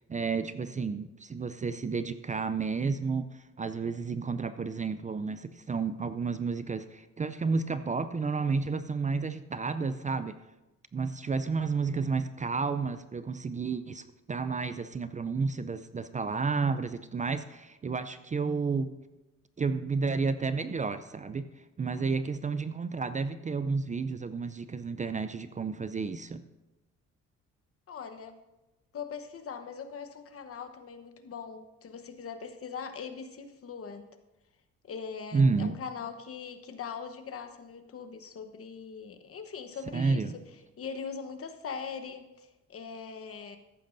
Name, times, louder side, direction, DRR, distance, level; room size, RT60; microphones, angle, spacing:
voice 1, 0.1-10.4 10.9-18.9 19.6-21.5 21.8-26.4 35.3-35.8 39.9-40.3, right 4 dB, 25° right, 11 dB, 0.5 m, -31 dB
voice 2, 27.9-28.4 28.9-34.1 34.8-40.2 40.8-43.6, left 6 dB, 50° left, 8 dB, 1.1 m, -41 dB
14.0 x 11.5 x 2.6 m, 1.0 s
cardioid pair, 90°, 30 cm